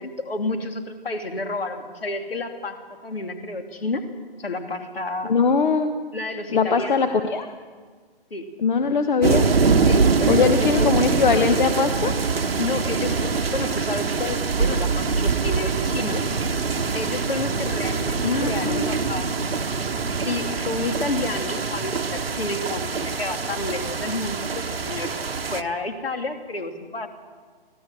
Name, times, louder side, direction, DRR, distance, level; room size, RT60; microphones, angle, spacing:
voice 1, 0.0-4.0 4.4-5.3 6.1-7.1 8.3-8.5 9.9-11.0 12.6-16.4 16.9-19.6 20.2-25.2 25.5-27.1, left 2 dB, 75° left, 5 dB, 3.0 m, -30 dB
voice 2, 5.2-5.9 6.5-7.5 8.6-9.5 10.3-12.1 18.2-19.0, left 5 dB, 55° left, 8 dB, 1.3 m, -21 dB
sound 1, 9.2-25.6, right 4 dB, 75° right, 1.2 m, -24 dB
25.5 x 17.0 x 7.6 m, 1.5 s
figure-of-eight pair, 135°, 30 cm